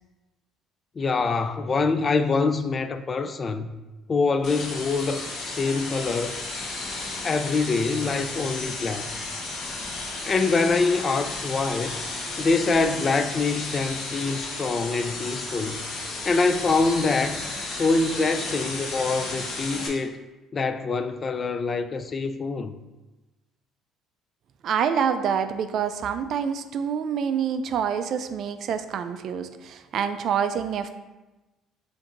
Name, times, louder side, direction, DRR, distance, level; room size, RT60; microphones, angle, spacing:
voice 1, 1.0-3.7 4.1-6.4 7.2-9.1 10.3-12.0 12.4-15.8 16.3-20.2 20.5-22.8, left 3 dB, 35° left, 0.3 m, -25 dB
sound 1, 4.4-19.9, left 3 dB, 60° left, 0.9 m, -33 dB
voice 2, 24.6-30.9, right 7 dB, 60° right, 0.3 m, -27 dB
7.1 x 2.6 x 2.5 m
supercardioid pair, 85°, 0 cm